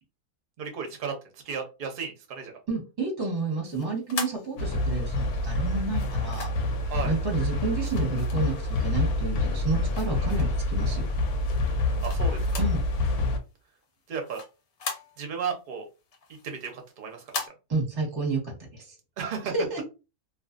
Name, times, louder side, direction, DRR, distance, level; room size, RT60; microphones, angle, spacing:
voice 1, 0.6-2.6 6.9-7.2 9.9-10.3 12.0-12.6 14.1-14.4 15.2-15.9 16.4-17.5 19.2-19.8, right 6 dB, 50° right, 3 dB, 0.7 m, -34 dB
voice 2, 2.7-6.5 7.0-11.1 12.6-12.8 17.7-19.0 19.5-19.8, right 3 dB, 20° right, -1 dB, 0.8 m, -30 dB
sound 1, 3.6-5.1 5.9-6.8 7.8-8.9 9.3-10.7 11.2-12.9 13.1-13.2 13.6-15.5 15.9-17.5, left 4 dB, 60° left, 0.9 m, -39 dB
sound 2, 4.6-13.4, left 2 dB, 85° left, 1.1 m, -27 dB
2.4 x 2.4 x 2.4 m, 0.30 s
omnidirectional pair, 1.6 m